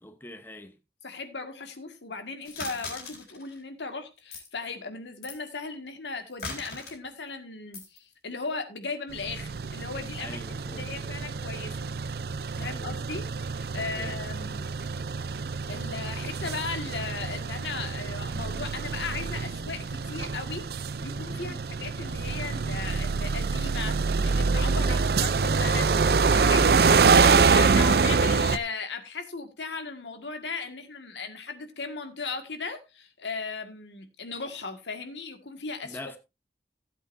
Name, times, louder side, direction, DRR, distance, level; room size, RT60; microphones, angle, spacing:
voice 1, 0.0-0.7 10.2-11.2 12.5-13.0 13.7-14.2 21.3-21.6 24.6-25.1 35.8-36.2, left 1 dB, 10° left, 0.9 m, -44 dB
voice 2, 1.0-11.7 12.6-14.6 15.7-36.0, left 4 dB, 90° left, 1.9 m, -37 dB
sound 1, 2.4-3.6 4.2-4.5 5.2-5.4 6.3-6.9 7.7-8.0, left 3 dB, 65° left, 4.2 m, -39 dB
sound 2, 9.2-28.6, right 4 dB, 60° right, 0.5 m, -25 dB
16.0 x 8.1 x 2.7 m
head